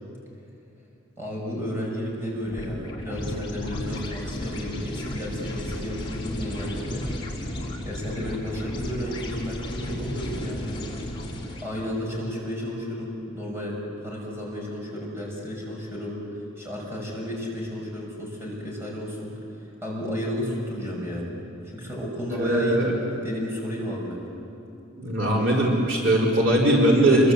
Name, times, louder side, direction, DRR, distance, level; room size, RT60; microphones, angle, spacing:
voice 1, 1.2-7.1 7.8-11.0 11.6-16.2 16.6-19.3 19.8-21.3 21.6-23.0 23.2-24.2, equal, 10° right, -3 dB, 6.4 m, -32 dB
sound 1, 2.4-11.9, left 1 dB, 25° left, 3.8 m, -34 dB
voice 2, 22.4-22.9 25.0-27.3, right 1 dB, 60° right, -3 dB, 4.6 m, -20 dB
28.0 x 23.0 x 8.4 m, 2.8 s
head